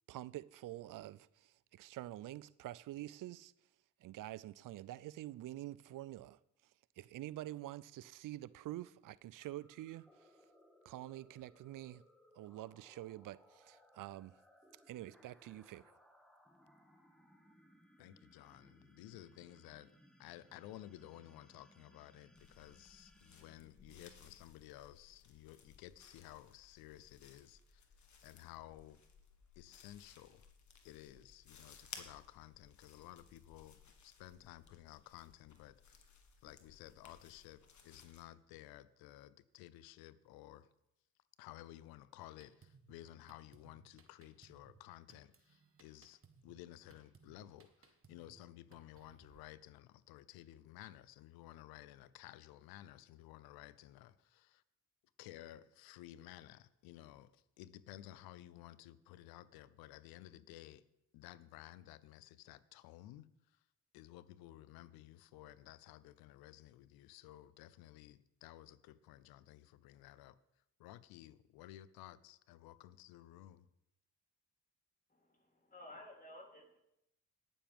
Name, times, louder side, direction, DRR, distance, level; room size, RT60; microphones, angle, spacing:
voice 1, 0.1-3.5 4.0-6.4 7.0-10.3 10.8-12.0 12.3-14.3 14.9-15.8, right 15 dB, 60° right, 0.5 m, -47 dB
sound 1, 9.4-24.5, equal, ahead, 1.9 m, -66 dB
voice 2, 18.0-19.9 20.2-27.9 28.2-29.0 29.6-30.5 30.8-35.8 36.4-40.7 41.4-54.6 55.2-60.8 61.1-63.3 63.9-70.4 70.8-73.7, left 14 dB, 85° left, 0.6 m, -55 dB
sound 2, 22.3-38.2, left 5 dB, 50° left, 1.7 m, -60 dB
Drum kit, 42.2-49.4, right 5 dB, 35° right, 1.5 m, -66 dB
voice 3, 75.1-76.8, left 1 dB, 25° left, 3.5 m, -55 dB
18.5 x 7.1 x 3.6 m
supercardioid pair, 50°, 36 cm